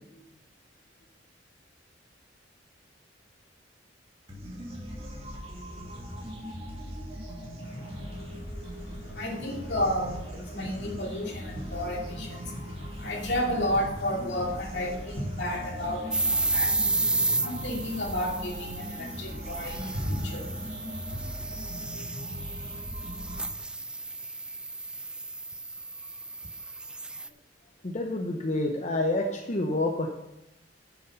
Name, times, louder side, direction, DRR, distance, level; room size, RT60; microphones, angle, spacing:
sound 1, 4.3-23.4, equal, 35° right, 2.5 m, -40 dB
voice 1, 7.6-21.4, left 1 dB, 70° left, 0 dB, 2.5 m, -33 dB
sound 2, 16.1-27.3, right 2 dB, 5° right, 0.3 m, -32 dB
voice 2, 27.8-30.1, left 2 dB, 40° left, 2 dB, 0.9 m, -28 dB
11.0 x 6.8 x 5.6 m, 0.87 s
head